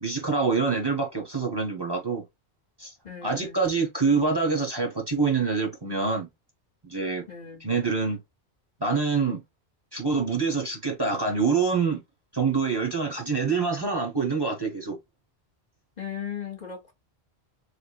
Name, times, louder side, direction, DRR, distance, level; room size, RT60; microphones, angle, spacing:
voice 1, 0.0-2.2 2.8-2.9 3.2-6.3 6.8-7.2 7.6-8.2 8.8-9.4 9.9-12.0 12.3-15.0, right 4 dB, 25° right, 0.9 m, -26 dB
voice 2, 3.0-3.6 7.3-7.8 16.0-16.9, left 8 dB, 45° left, 0.9 m, -37 dB
3.5 x 3.4 x 2.3 m
omnidirectional pair, 1.1 m